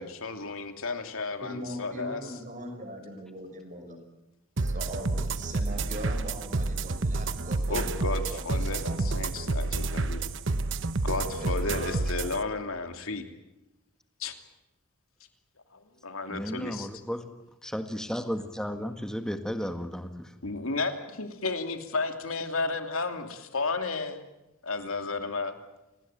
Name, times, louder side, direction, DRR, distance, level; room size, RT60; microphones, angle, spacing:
voice 1, 0.0-2.2 7.7-10.2 11.0-13.2 14.2-14.3 16.0-16.9 20.4-24.2 24.6-25.6, left 3 dB, 80° left, 6 dB, 2.8 m, -33 dB
voice 2, 1.4-4.0 4.6-9.1 11.1-12.3, equal, 35° right, 5 dB, 6.0 m, -40 dB
sound 1, 4.6-12.4, right 3 dB, 60° right, 0.9 m, -29 dB
voice 3, 16.3-17.3 17.6-20.3, equal, 5° left, 7 dB, 1.7 m, -34 dB
27.5 x 19.5 x 9.1 m, 0.96 s
head